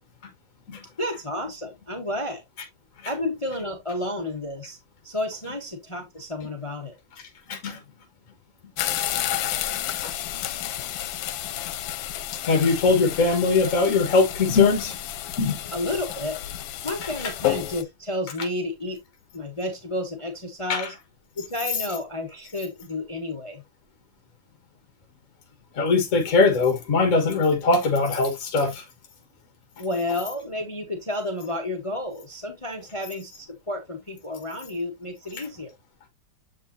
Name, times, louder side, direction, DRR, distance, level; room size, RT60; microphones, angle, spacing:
voice 1, 1.0-2.4 3.0-4.8 5.0-6.9 15.7-16.4 16.8-19.0 19.3-20.9 21.4-23.6 29.8-35.7, left 1 dB, 20° left, 1.0 m, -31 dB
voice 2, 7.5-7.8 10.0-10.1 12.4-15.0 15.4-15.6 17.2-17.3 20.7-20.9 25.7-28.8, left 4 dB, 45° left, 1.8 m, -21 dB
sound 1, 8.8-17.8, left 12 dB, 85° left, 1.4 m, -31 dB
7.6 x 5.3 x 2.6 m
omnidirectional pair, 2.0 m